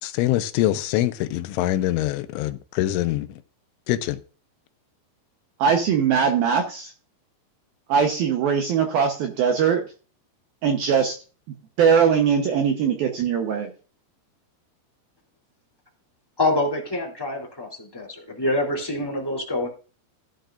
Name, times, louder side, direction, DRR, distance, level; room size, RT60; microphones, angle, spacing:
voice 1, 0.0-3.4 3.9-4.2, left 14 dB, 85° left, 3.2 m, -24 dB
voice 2, 5.6-6.9 7.9-9.8 10.6-11.2 11.8-13.7, right 7 dB, 75° right, 2.3 m, -21 dB
voice 3, 16.4-19.7, left 2 dB, 5° left, 2.0 m, -26 dB
15.5 x 10.0 x 2.5 m
omnidirectional pair, 5.5 m